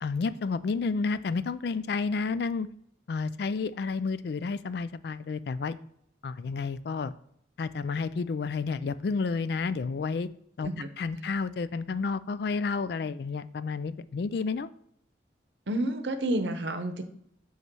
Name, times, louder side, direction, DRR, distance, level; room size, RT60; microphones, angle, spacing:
voice 1, 0.0-2.7 3.1-5.8 6.2-7.1 7.6-10.3 10.6-10.7 11.0-14.7, left 4 dB, 55° left, 15 dB, 0.3 m, -30 dB
voice 2, 15.7-17.0, right 1 dB, 70° right, 8 dB, 0.9 m, -30 dB
8.0 x 3.1 x 6.1 m, 0.71 s
head